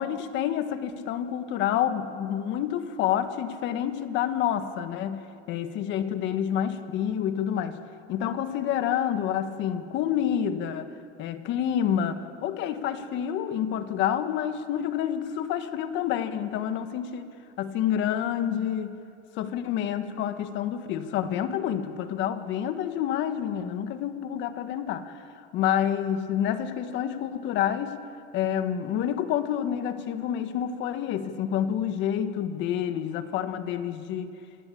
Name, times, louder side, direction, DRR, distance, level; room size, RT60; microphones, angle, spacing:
voice 1, 0.0-5.2 5.5-7.8 8.1-10.9 11.2-17.3 17.6-19.0 19.4-25.2 25.5-28.0 28.3-34.3, left 9 dB, 30° left, 9 dB, 1.6 m, -28 dB
27.5 x 21.0 x 8.6 m, 2.3 s
supercardioid pair, 150°, 37 cm